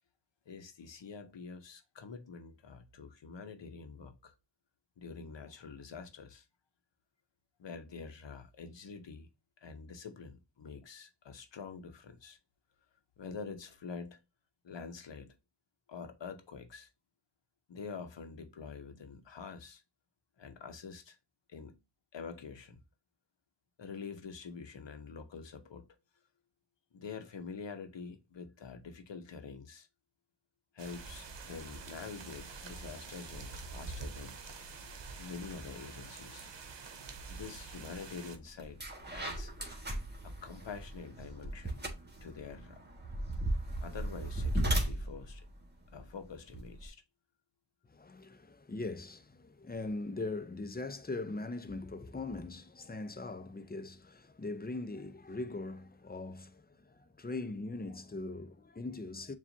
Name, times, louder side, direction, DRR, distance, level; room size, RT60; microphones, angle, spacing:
voice 1, 0.5-4.3 5.0-6.5 7.6-9.3 9.6-12.4 13.2-14.2 14.6-15.3 15.9-16.9 17.7-19.8 20.4-21.2 21.5-21.8 22.1-22.8 23.8-25.8 26.9-29.9 30.7-34.4 35.2-36.5 37.3-38.8 39.1-39.5 40.2-41.9 42.2-42.8 43.8-45.4 45.9-47.0, left 5 dB, 90° left, 0.8 m, -46 dB
sound 1, 30.8-38.4, right 4 dB, 85° right, 0.8 m, -46 dB
sound 2, 38.1-38.2 38.6-46.9, right 1 dB, 25° right, 1.4 m, -36 dB
voice 2, 47.8-59.4, left 2 dB, 20° left, 0.6 m, -41 dB
7.0 x 2.4 x 2.6 m
cardioid pair, 45°, 42 cm